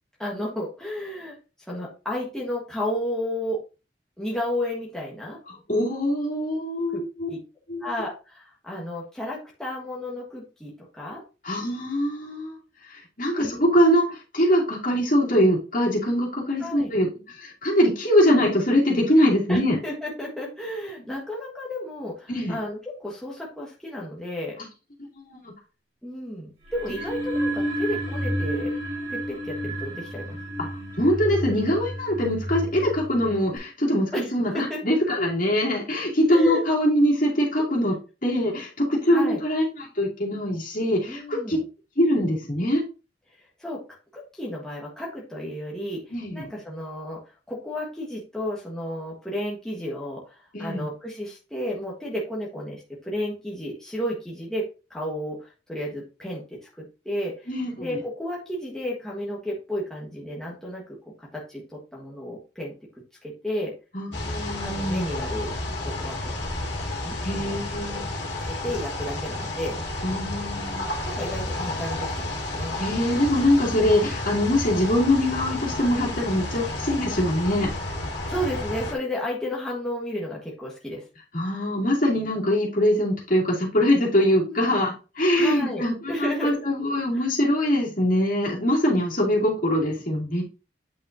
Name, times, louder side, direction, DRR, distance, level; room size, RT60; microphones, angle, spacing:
voice 1, 0.2-1.4 1.7-3.6 4.2-5.4 6.9-7.0 7.3-7.4 7.8-11.2 13.4-13.6 16.6-16.9 19.5-24.6 26.0-28.7 29.1-30.4 34.1-34.8 36.3-36.6 39.1-39.4 41.1-41.6 43.4-43.8 44.1-47.2 47.5-54.6 54.9-56.4 56.8-57.5 57.8-60.8 61.2-62.7 63.2-63.7 64.6-65.5 65.8-66.2 67.0-67.6 67.9-68.0 68.4-70.0 71.0-72.7 78.3-81.0 84.4-84.7 85.4-86.6 87.1-87.3, left 1 dB, 5° left, -4 dB, 1.3 m, -32 dB
voice 2, 5.5-7.3 7.7-7.8 11.4-12.6 12.9-19.8 22.3-22.6 25.3-25.4 31.0-41.6 42.0-42.8 46.1-46.5 50.5-50.9 57.5-57.9 63.9-65.1 67.2-68.0 70.0-70.8 72.8-77.7 81.3-90.4, equal, 45° left, -3 dB, 2.6 m, -23 dB
sound 1, 26.6-33.6, equal, 35° right, 2.6 m, -30 dB
sound 2, 64.1-78.9, left 2 dB, 65° left, 2.2 m, -31 dB
8.6 x 5.6 x 2.6 m, 0.32 s
head